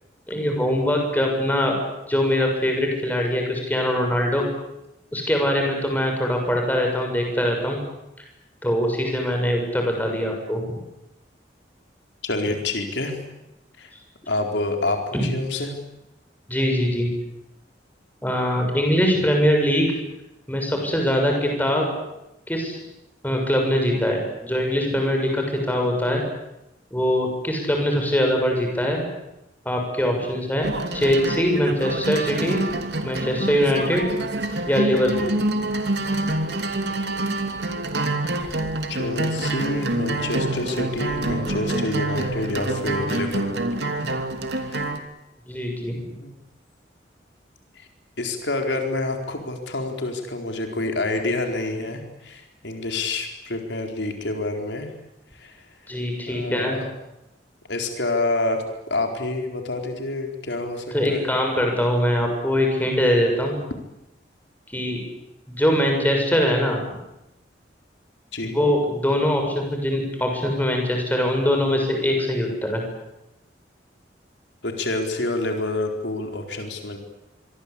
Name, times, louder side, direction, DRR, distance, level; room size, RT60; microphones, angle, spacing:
voice 1, 0.3-1.7 2.1-4.4 5.1-7.8 8.2-8.3 8.6-10.8 15.1-15.3 16.5-17.1 18.2-19.9 20.5-21.9 22.5-22.8 23.2-26.2 26.9-29.0 29.7-30.7 30.9-32.6 33.0-34.1 34.7-35.3 45.5-46.1 55.9-56.8 60.9-63.6 64.7-65.0 65.5-66.8 68.4-72.8, equal, 10° left, 2 dB, 6.9 m, -22 dB
voice 2, 12.2-13.2 13.8-13.9 14.3-15.7 38.9-43.7 44.6-44.8 46.2-46.3 47.8-47.9 48.2-54.9 55.3-55.6 56.3-56.9 57.7-61.3 68.3-68.6 74.6-77.0, left 2 dB, 85° left, 3 dB, 4.3 m, -28 dB
sound 1, 30.6-45.0, right 2 dB, 70° right, 2.8 m, -26 dB
26.0 x 24.0 x 8.6 m, 0.91 s
head